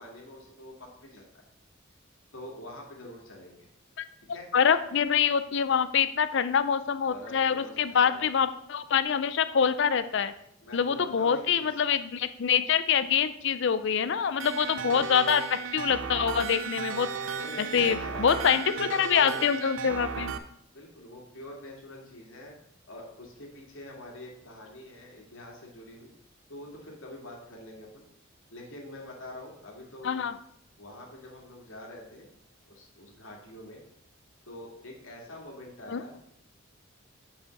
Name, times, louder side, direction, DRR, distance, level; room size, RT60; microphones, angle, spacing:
voice 1, 0.0-1.4 2.3-3.7 4.3-4.5 7.1-8.4 10.6-11.7 14.7-15.2 17.4-19.5 20.7-22.5 22.9-26.1 26.5-28.1 28.5-30.2 30.8-32.3 32.7-33.8 34.5-36.2, left 1 dB, 85° left, -1 dB, 2.1 m, -45 dB
voice 2, 4.5-10.3 10.7-17.1 17.7-20.3 30.0-30.3 35.9-36.0, left 7 dB, 60° left, 12 dB, 0.5 m, -25 dB
sound 1, 14.4-20.4, right 6 dB, 70° right, 0.6 m, -35 dB
5.3 x 5.0 x 6.4 m, 0.72 s
head